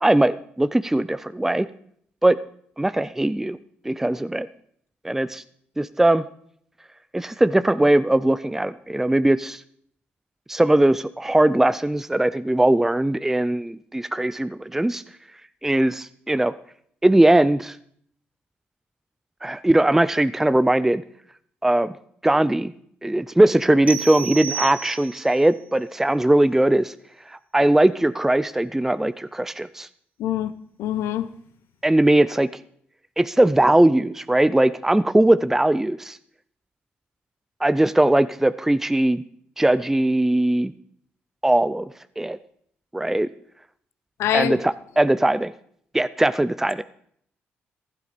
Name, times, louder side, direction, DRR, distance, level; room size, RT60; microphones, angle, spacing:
voice 1, 0.0-1.7 2.2-2.4 2.8-3.6 3.8-4.5 5.0-5.4 5.8-6.2 7.1-9.6 10.5-15.0 15.6-16.5 17.0-17.8 19.4-21.0 21.6-21.9 22.2-22.7 23.0-26.9 27.3-29.9 31.8-32.5 33.2-36.2 37.6-39.2 39.6-40.7 41.4-41.9 42.2-42.4 42.9-43.3 44.3-45.5 45.9-46.8, right 1 dB, 10° right, 14 dB, 0.5 m, -20 dB
sound 1, 23.9-25.4, right 7 dB, 30° right, 1.8 m, -31 dB
voice 2, 30.2-30.5 30.8-31.3 44.2-44.6, left 11 dB, 85° left, 13 dB, 0.9 m, -24 dB
15.5 x 11.5 x 5.1 m, 0.65 s
cardioid pair, 80°, 4 cm